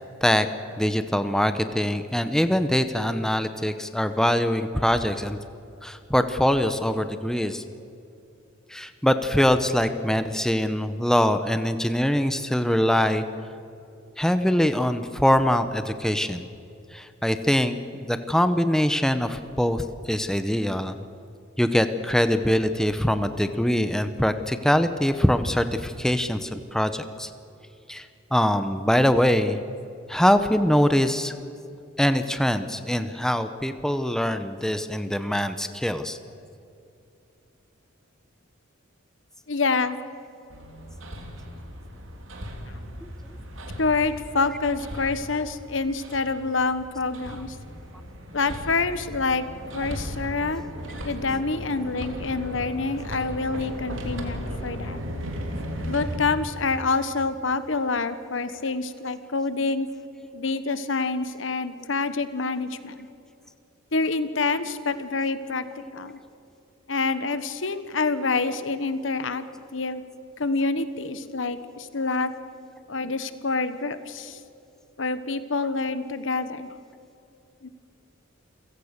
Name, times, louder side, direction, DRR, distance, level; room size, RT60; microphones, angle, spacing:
voice 1, 0.8-5.4 5.8-7.6 8.7-13.2 14.2-16.5 16.9-21.0 21.6-27.3 27.9-28.1 28.3-29.6 30.1-31.3 32.0-36.2, equal, 5° left, 9 dB, 0.8 m, -23 dB
voice 2, 39.5-40.0 43.8-47.6 48.3-49.4 49.7-50.6 51.0-55.0 55.8-59.9 60.3-63.1 63.9-65.6 65.9-66.2 66.9-69.4 69.7-70.0 70.4-72.3 72.9-74.4 75.0-76.7 77.6-77.7, left 3 dB, 65° left, 12 dB, 1.3 m, -27 dB
Hammer, 40.5-56.2, equal, 70° right, 3.2 m, -36 dB
28.5 x 17.0 x 6.7 m, 2.7 s
head